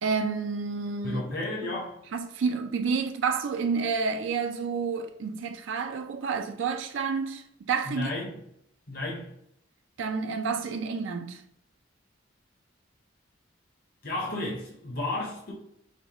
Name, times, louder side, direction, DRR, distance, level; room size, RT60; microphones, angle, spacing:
voice 1, 0.0-1.2 1.6-1.8 2.1-8.1 10.0-11.4, right 5 dB, 70° right, 0.4 m, -29 dB
voice 2, 1.0-2.0 7.9-8.4 8.9-9.3 14.0-15.5, left 2 dB, 50° left, 0.8 m, -32 dB
5.0 x 2.1 x 3.4 m
head